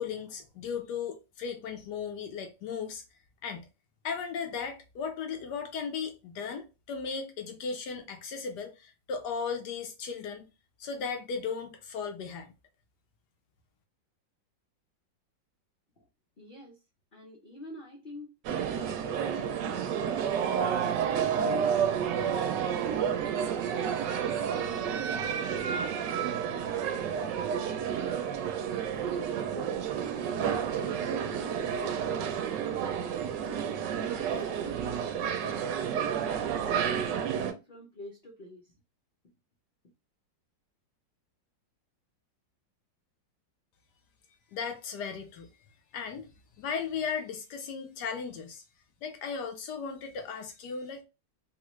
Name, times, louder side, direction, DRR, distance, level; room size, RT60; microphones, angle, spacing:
voice 1, 0.0-3.0 3.4-3.7 4.0-10.5 10.8-12.5 44.5-45.5 45.9-46.3 46.6-48.6 49.0-51.0, left 6 dB, 75° left, 1.1 m, -36 dB
voice 2, 16.4-16.8 17.1-19.9 20.5-21.9 22.9-27.3 27.9-29.8 30.5-32.3 32.7-33.8 34.1-38.7, left 1 dB, 50° left, 0.6 m, -48 dB
sound 1, 18.4-37.5, right 8 dB, 75° right, 1.2 m, -30 dB
3.5 x 2.4 x 3.1 m
omnidirectional pair, 2.0 m